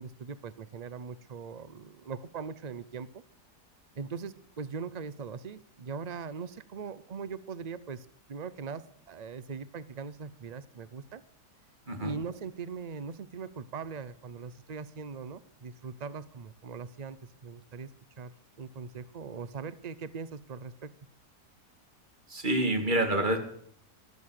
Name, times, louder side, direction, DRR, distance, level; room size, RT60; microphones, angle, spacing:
voice 1, 0.0-3.2 4.0-11.2 12.0-17.9 18.2-20.9, right 5 dB, 90° right, 15 dB, 0.3 m, -41 dB
voice 2, 22.3-23.4, right 1 dB, 30° right, 4 dB, 2.6 m, -27 dB
13.5 x 13.0 x 6.4 m, 0.64 s
omnidirectional pair, 1.8 m